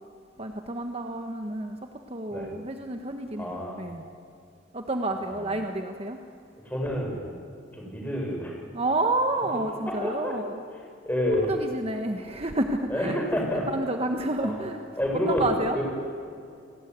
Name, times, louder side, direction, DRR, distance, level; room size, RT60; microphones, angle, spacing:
voice 1, 0.4-1.8 2.1-4.0 4.7-6.2 8.7-10.6 11.3-13.3 13.7-14.8 15.3-15.8, right 2 dB, 30° right, 5 dB, 1.4 m, -29 dB
voice 2, 3.4-3.8 5.3-5.5 6.6-7.3 7.7-8.6 9.9-10.3 11.0-11.5 12.9-13.7 14.4-14.6 15.0-15.5 15.7-15.8, left 1 dB, 10° left, 0 dB, 6.6 m, -28 dB
30.0 x 19.5 x 9.6 m, 2.5 s
head